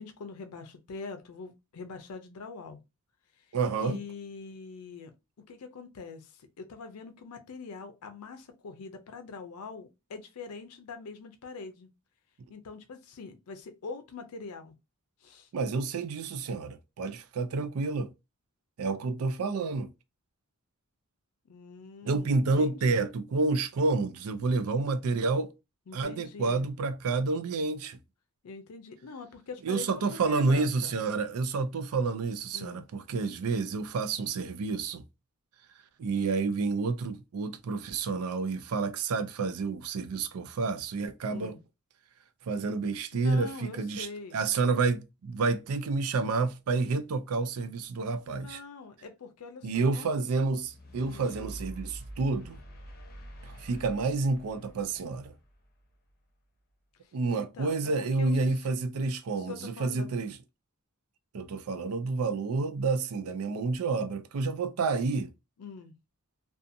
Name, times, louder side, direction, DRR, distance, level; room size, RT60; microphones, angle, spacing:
voice 1, 0.0-2.8 3.4-3.5 3.8-5.1 5.5-11.9 12.5-14.7 15.2-15.5 21.5-23.1 25.9-26.7 28.4-31.0 32.5-32.8 41.3-41.6 43.1-44.4 48.3-50.1 51.1-51.3 57.3-58.4 58.6-58.7 59.4-60.2 65.6-65.9, left 4 dB, 85° left, 0.5 m, -44 dB
voice 2, 3.5-4.0 15.5-18.1 18.8-19.9 22.0-25.5 25.9-28.0 29.6-35.0 36.0-41.6 42.5-44.1 44.3-48.6 49.6-52.6 53.4-55.3 57.1-60.4 61.3-65.3, right 3 dB, 75° right, 0.4 m, -29 dB
sound 1, 50.6-55.9, right 1 dB, 45° left, 0.7 m, -46 dB
2.6 x 2.3 x 2.5 m
head